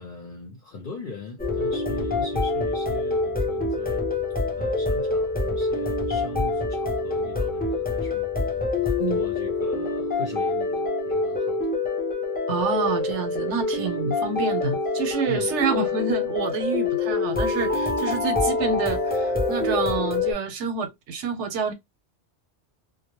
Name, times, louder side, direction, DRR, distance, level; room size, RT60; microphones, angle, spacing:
voice 1, 0.0-4.1 4.6-11.7 15.3-15.6, left 3 dB, 55° left, 0.7 m, -40 dB
sound 1, 1.4-20.3, left 3 dB, 10° left, 0.4 m, -26 dB
voice 2, 12.5-21.7, right 5 dB, 85° right, 1.0 m, -28 dB
2.2 x 2.0 x 2.9 m
omnidirectional pair, 1.2 m